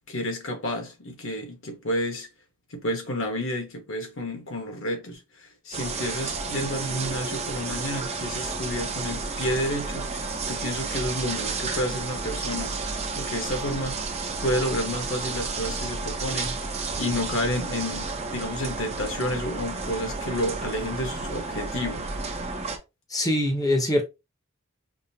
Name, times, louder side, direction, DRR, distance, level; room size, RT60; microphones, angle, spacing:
voice 1, 0.1-2.3 2.7-12.7 13.2-14.0 14.4-16.5 16.9-22.1, left 1 dB, 60° left, 1.2 m, -30 dB
sound 1, 5.7-22.8, right 3 dB, 30° right, 0.6 m, -31 dB
voice 2, 23.1-24.0, left 1 dB, 15° left, 0.8 m, -23 dB
5.2 x 2.1 x 2.8 m
head